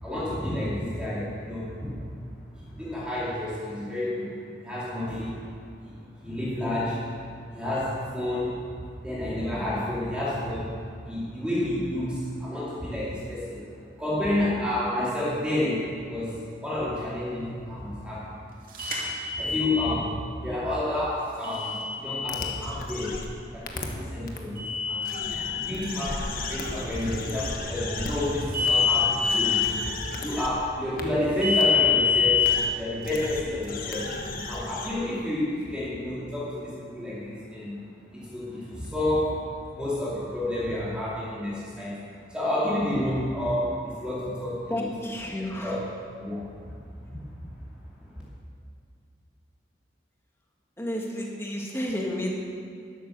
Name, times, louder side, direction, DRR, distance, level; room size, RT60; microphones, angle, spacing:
voice 1, 0.0-5.4 5.8-8.6 9.0-10.7 11.0-13.7 14.0-18.6 18.9-23.2 23.5-34.2 34.4-37.8 38.1-45.1 45.6-45.8 46.2-46.5 47.1-47.2 48.0-48.1, left 1 dB, 5° right, -8 dB, 2.6 m, -30 dB
sound 1, 18.7-19.9 21.4-22.5 24.6-25.6 28.5-29.6 31.4-32.5, left 6 dB, 50° right, 2.7 m, -25 dB
sound 2, 22.3-23.2 23.6-23.8 24.3-24.4 25.0-30.5 31.0-31.1 31.6-31.7 32.4-32.7 33.0-34.9, left 3 dB, 50° left, 1.4 m, -35 dB
voice 2, 44.7-45.8 50.8-52.4, left 1 dB, 15° left, -1 dB, 1.7 m, -31 dB
12.5 x 11.5 x 6.7 m, 2.3 s
head